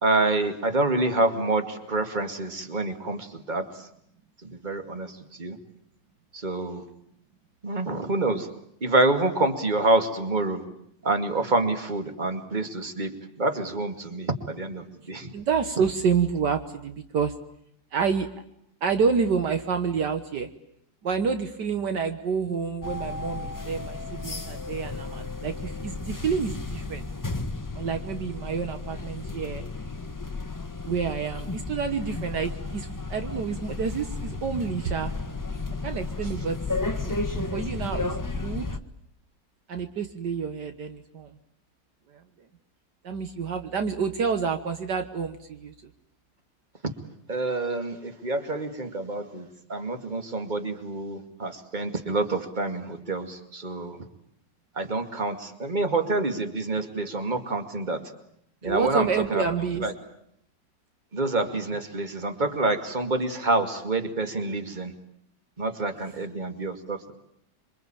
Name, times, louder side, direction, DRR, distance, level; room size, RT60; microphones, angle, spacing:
voice 1, 0.0-3.7 4.4-5.6 6.3-6.8 7.6-8.5 8.8-10.6 11.0-13.1 13.4-15.3 47.3-54.0 54.8-58.0 58.6-59.4 59.8-59.9 61.1-64.9 65.6-67.1, right 2 dB, 25° right, 7 dB, 2.4 m, -27 dB
voice 2, 15.3-17.3 17.9-18.3 18.8-20.5 21.0-27.1 27.7-29.6 30.9-35.1 35.8-36.6 36.9-38.2 38.4-38.7 39.7-41.4 42.1-42.2 43.0-45.7 58.6-59.9, right 6 dB, 65° right, 8 dB, 1.9 m, -28 dB
sound 1, 22.8-38.8, left 3 dB, 15° left, 0.9 m, -33 dB
27.0 x 24.5 x 9.0 m, 0.72 s
omnidirectional pair, 2.0 m